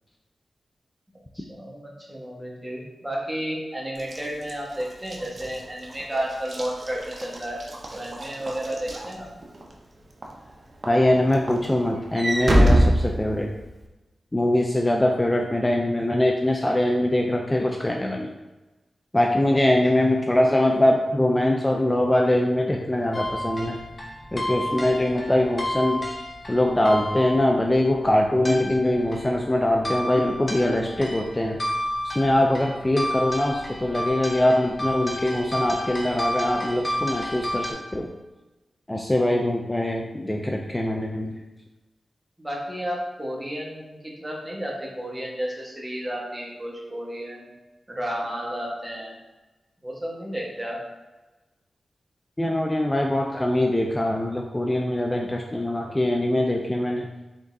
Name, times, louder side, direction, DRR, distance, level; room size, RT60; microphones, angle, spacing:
voice 1, 1.3-7.6 7.9-9.3 19.6-19.7 42.4-47.5 47.9-49.1 49.8-50.8, equal, 20° right, -2 dB, 1.2 m, -32 dB
Walk footsteps / Slam, 4.0-9.7 10.2-10.5 10.8-13.8, right 1 dB, 50° right, 0.6 m, -25 dB
voice 2, 10.9-13.5 14.3-18.3 19.1-23.8 24.3-26.1 26.5-31.6 32.0-38.1 38.9-41.3 52.4-57.1, left 1 dB, 20° left, 1 dB, 0.4 m, -22 dB
sound 1, 23.1-37.7, left 1 dB, 40° left, 0.8 m, -32 dB
3.8 x 3.5 x 2.6 m, 1.1 s
cardioid pair, 50°, 0 cm